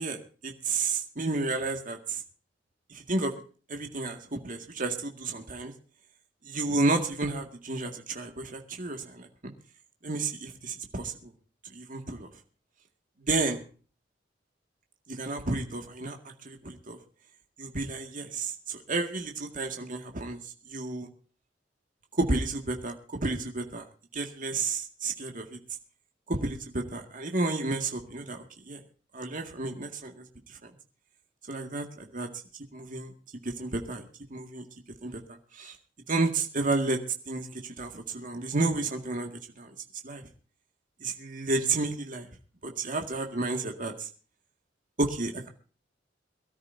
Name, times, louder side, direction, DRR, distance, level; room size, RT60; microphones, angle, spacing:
voice 1, 0.0-2.2 2.9-3.3 3.7-5.7 6.5-9.5 10.0-11.3 11.7-12.3 13.2-13.6 15.1-16.2 16.4-17.0 17.6-20.4 20.7-21.1 22.1-23.9 24.1-25.6 26.3-28.8 29.1-30.6 31.5-32.3 32.7-33.1 33.4-34.0 34.3-34.6 35.0-35.2 35.5-35.7 36.1-37.0 37.3-39.3 39.6-39.7 40.0-40.3 41.0-42.3 42.6-44.1 45.0-45.5, right 3 dB, 45° right, 4 dB, 2.0 m, -31 dB
23.5 x 13.0 x 2.7 m, 0.38 s
head